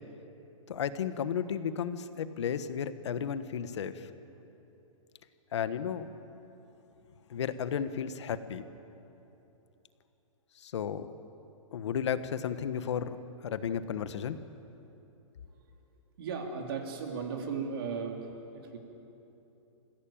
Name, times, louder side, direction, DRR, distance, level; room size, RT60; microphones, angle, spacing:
voice 1, 0.7-4.1 5.5-6.1 7.3-8.6 10.6-11.1 11.7-13.2 13.4-14.4, left 8 dB, 55° left, 11 dB, 1.3 m, -33 dB
voice 2, 16.2-18.8, right 5 dB, 45° right, 2 dB, 3.6 m, -36 dB
28.5 x 16.5 x 9.1 m, 3.0 s
hypercardioid pair, 175°, 17 cm